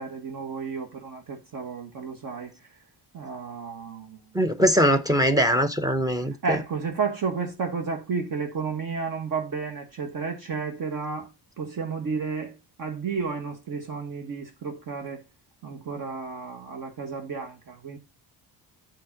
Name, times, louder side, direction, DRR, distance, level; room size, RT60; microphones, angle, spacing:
voice 1, 0.0-2.5 3.1-4.3 6.2-11.3 11.6-12.5 12.8-15.2 15.6-18.0, right 5 dB, 55° right, 1.4 m, -32 dB
voice 2, 4.3-6.3, equal, 10° right, 0.6 m, -21 dB
8.4 x 3.6 x 5.7 m
cardioid pair, 135°, 39 cm